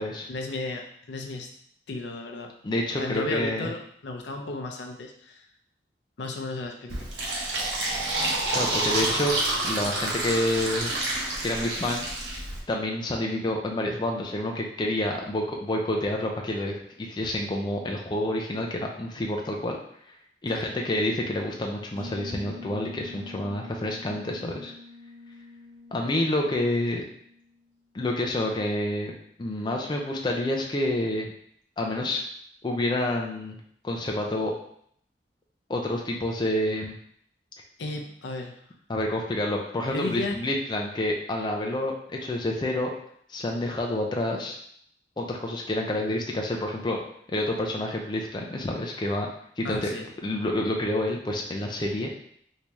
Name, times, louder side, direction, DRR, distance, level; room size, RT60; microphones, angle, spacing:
voice 1, 0.3-1.5 1.9-2.5 3.0-5.4 6.2-7.1 20.5-20.7 37.8-38.6 39.9-40.4 49.6-50.1, left 2 dB, 80° left, 3 dB, 0.5 m, -34 dB
voice 2, 2.6-3.7 8.5-9.3 9.6-11.0 11.4-12.0 12.7-19.8 20.4-24.7 25.9-27.0 27.9-29.1 29.4-31.3 31.8-32.2 32.6-33.6 33.8-34.5 35.7-36.9 38.9-42.9 43.3-44.6 45.2-47.0 47.3-49.3 49.6-49.9 50.2-52.1, left 1 dB, 25° left, 0 dB, 0.4 m, -28 dB
Fill (with liquid), 6.9-12.6, right 2 dB, 75° right, 0.9 m, -28 dB
sound 1, 22.0-27.5, left 3 dB, 45° right, 1.1 m, -45 dB
3.4 x 2.7 x 3.0 m, 0.66 s
head